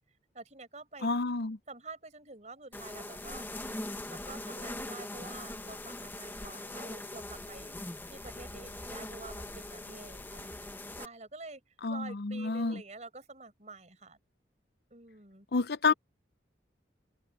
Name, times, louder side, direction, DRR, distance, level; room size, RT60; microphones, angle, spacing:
voice 1, 0.3-1.1 1.7-3.5 4.1-7.7 8.1-14.2 14.9-15.5 15.9-16.0, right 3 dB, 40° right, 5.3 m, -48 dB
voice 2, 1.0-1.6 11.8-12.8 15.5-15.9, left 4 dB, 60° left, 0.6 m, -29 dB
sound 1, 2.7-11.1, left 1 dB, 10° left, 1.1 m, -41 dB
head